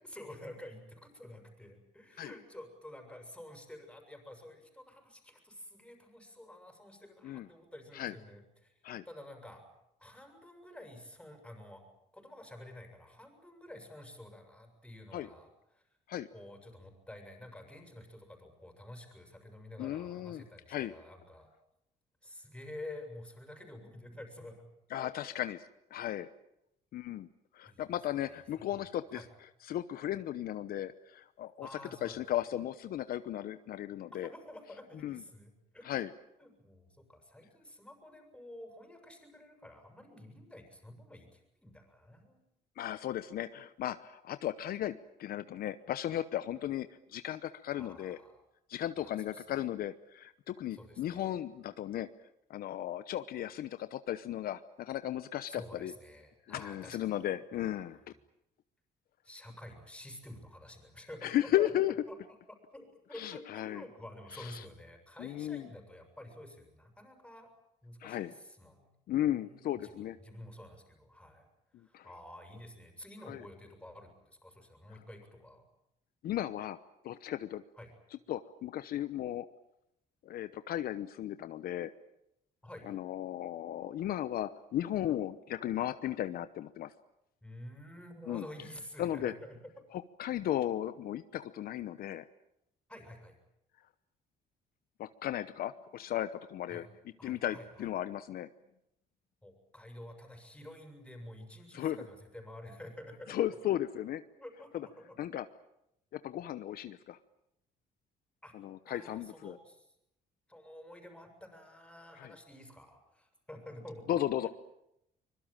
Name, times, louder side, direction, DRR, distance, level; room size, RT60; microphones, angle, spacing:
voice 1, 0.0-8.7 9.1-9.6 10.0-11.8 12.1-15.5 15.7-15.8 16.3-21.5 22.2-24.7 25.0-25.1 27.6-27.8 28.3-28.4 29.1-29.3 31.6-32.2 34.1-36.0 36.4-42.4 47.8-48.4 49.0-49.4 50.7-51.4 55.5-57.2 57.5-58.0 59.2-61.7 62.1-62.2 62.5-67.5 67.8-68.9 69.3-69.9 70.2-71.5 71.8-75.6 77.8-77.9 82.6-82.9 87.4-89.8 92.9-93.4 96.7-96.9 97.2-97.9 99.4-103.4 104.4-105.3 108.4-108.5 108.9-109.9 110.5-114.1 114.4-114.5, left 1 dB, 5° left, 5 dB, 6.9 m, -50 dB
voice 2, 19.8-20.9 24.9-26.3 26.9-27.3 27.5-29.2 29.7-34.3 35.0-35.2 35.8-36.1 42.8-48.2 48.7-52.1 52.5-55.9 56.5-58.0 61.2-61.9 63.2-63.8 64.3-64.6 65.2-65.7 68.0-68.3 69.1-70.2 71.7-72.1 73.3-73.4 76.2-76.8 77.0-77.6 78.3-79.5 80.2-81.9 82.9-86.9 88.3-88.4 89.0-89.3 89.9-92.2 95.0-96.9 97.2-98.5 101.7-102.0 103.3-104.2 104.7-104.9 105.2-105.5 106.1-107.2 108.5-109.6 112.2-112.3 114.1-114.5, left 12 dB, 65° left, 12 dB, 1.0 m, -35 dB
24.5 x 22.5 x 9.0 m, 0.80 s
cardioid pair, 120°, 16 cm